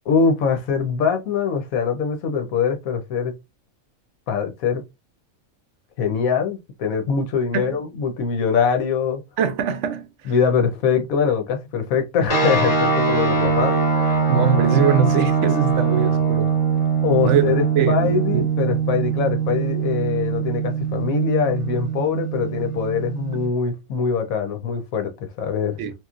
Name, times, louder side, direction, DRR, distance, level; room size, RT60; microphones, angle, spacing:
voice 1, 0.1-3.3 4.3-4.8 6.0-9.2 10.3-13.7 17.0-25.8, left 6 dB, 85° left, 1.3 m, -23 dB
voice 2, 9.4-10.3 13.4-13.5 14.3-16.5 17.2-18.5 25.8-25.9, right 7 dB, 65° right, 0.8 m, -22 dB
sound 1, 12.3-23.5, right 5 dB, 55° left, 1.7 m, -22 dB
3.1 x 2.6 x 2.4 m
omnidirectional pair, 1.4 m